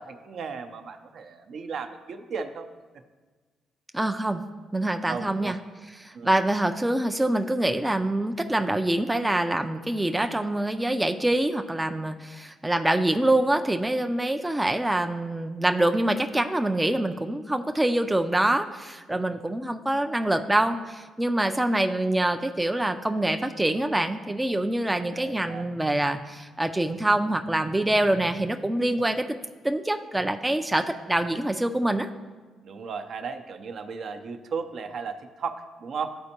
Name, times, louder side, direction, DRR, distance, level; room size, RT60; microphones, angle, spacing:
voice 1, 0.0-2.7 5.1-5.6 6.1-6.4 19.1-19.2 25.1-25.7 32.6-36.2, right 5 dB, 60° right, 7 dB, 0.5 m, -35 dB
voice 2, 3.9-4.4 4.7-5.6 6.0-29.3 29.6-32.1, right 1 dB, 10° right, 6 dB, 0.3 m, -25 dB
12.0 x 4.3 x 2.8 m, 1.4 s
cardioid pair, 90°, 0 cm